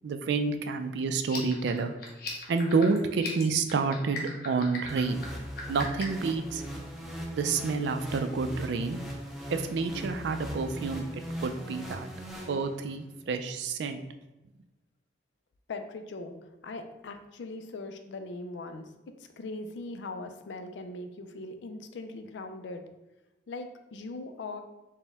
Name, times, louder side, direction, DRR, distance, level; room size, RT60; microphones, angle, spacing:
voice 1, 0.0-1.9 2.5-5.3 5.7-6.6 7.3-9.0 9.5-11.0 11.4-12.1 12.5-14.0, right 4 dB, 75° right, 8 dB, 0.3 m, -29 dB
sound 1, 1.2-6.2, left 4 dB, 55° left, 0.8 m, -40 dB
sound 2, 4.9-13.1, equal, ahead, 0.5 m, -40 dB
voice 2, 15.7-16.4 16.6-22.8 23.5-24.6, left 2 dB, 85° left, 7 dB, 0.4 m, -40 dB
4.3 x 2.1 x 3.5 m, 1.0 s
head